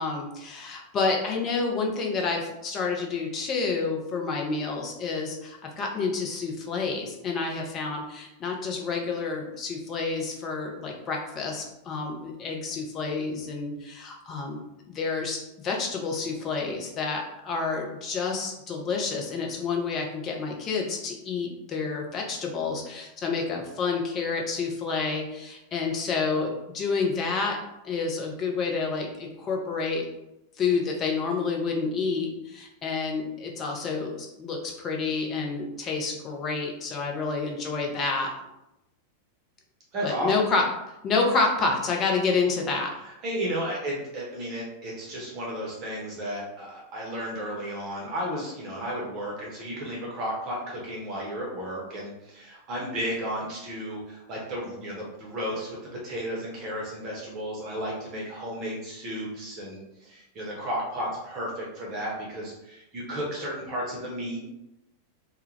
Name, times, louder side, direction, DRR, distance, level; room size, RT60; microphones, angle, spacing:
voice 1, 0.0-27.6 27.8-30.0 30.6-38.3 40.0-40.6 41.0-42.9, left 4 dB, 30° left, 0 dB, 0.5 m, -29 dB
voice 2, 39.9-40.3 43.0-64.4, equal, 35° right, -3 dB, 0.8 m, -33 dB
2.2 x 2.1 x 3.1 m, 0.90 s
figure-of-eight pair, 90°, 0 cm